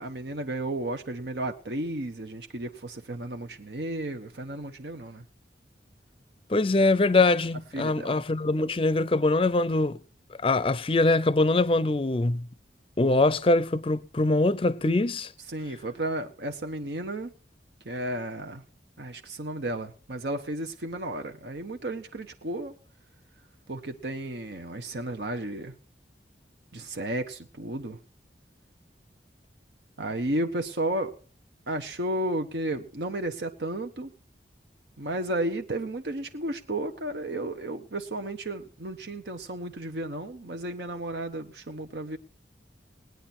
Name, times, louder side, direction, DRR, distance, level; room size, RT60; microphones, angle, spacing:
voice 1, 0.0-5.2 7.7-8.2 15.5-17.3 17.8-18.6 19.0-22.7 23.7-25.7 26.7-28.0 30.0-31.1 31.7-34.1 35.0-42.2, right 1 dB, 70° right, 1.1 m, -33 dB
voice 2, 6.5-10.0 10.4-12.5 13.0-15.3, left 2 dB, 30° left, 0.5 m, -23 dB
19.5 x 9.4 x 4.3 m
head